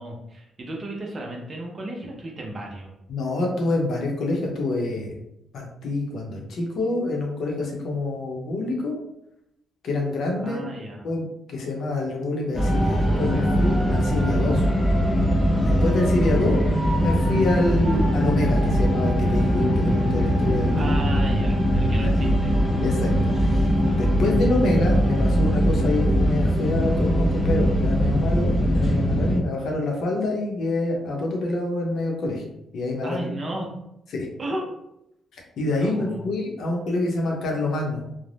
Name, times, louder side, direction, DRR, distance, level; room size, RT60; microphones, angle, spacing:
voice 1, 0.0-2.9 10.4-11.0 20.7-22.5 33.0-33.7 34.4-34.7 35.7-36.3, right 1 dB, 25° right, -1 dB, 0.6 m, -34 dB
voice 2, 3.1-5.1 5.5-9.0 9.8-10.7 11.0-14.7 15.6-16.6 17.0-20.9 22.0-22.1 22.8-23.6 23.9-32.4 32.7-33.2 34.1-34.3 35.3-38.0, left 2 dB, 55° left, -1 dB, 0.7 m, -26 dB
sound 1, 12.5-29.4, equal, 15° left, 0.5 m, -21 dB
2.6 x 2.1 x 3.2 m, 0.82 s
cardioid pair, 170°, 0 cm